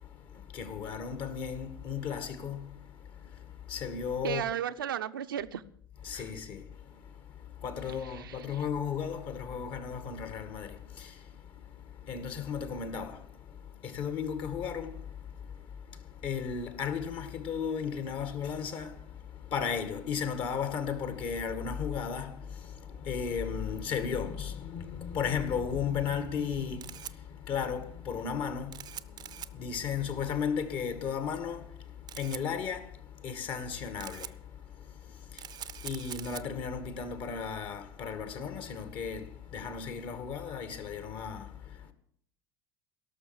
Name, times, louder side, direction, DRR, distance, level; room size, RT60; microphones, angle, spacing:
voice 1, 0.0-4.5 6.0-41.9, left 7 dB, 45° left, 2.1 m, -36 dB
voice 2, 4.2-5.6 6.1-6.2 8.2-8.4, right 10 dB, 75° right, 0.8 m, -34 dB
Camera, 26.4-39.8, right 10 dB, 35° right, 0.7 m, -48 dB
17.5 x 6.9 x 9.6 m
figure-of-eight pair, 70°, 12 cm